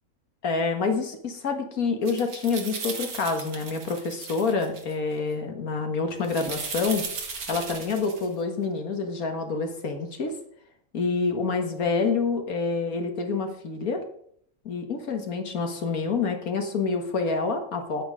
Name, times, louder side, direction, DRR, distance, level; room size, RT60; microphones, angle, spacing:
voice 1, 0.4-7.1 7.5-10.3 10.9-14.0 14.7-18.0, left 4 dB, 70° left, 5 dB, 1.9 m, -27 dB
sound 1, 2.1-4.9 6.2-8.3, right 5 dB, 75° right, 2.1 m, -36 dB
9.0 x 8.7 x 4.9 m, 0.65 s
omnidirectional pair, 1.6 m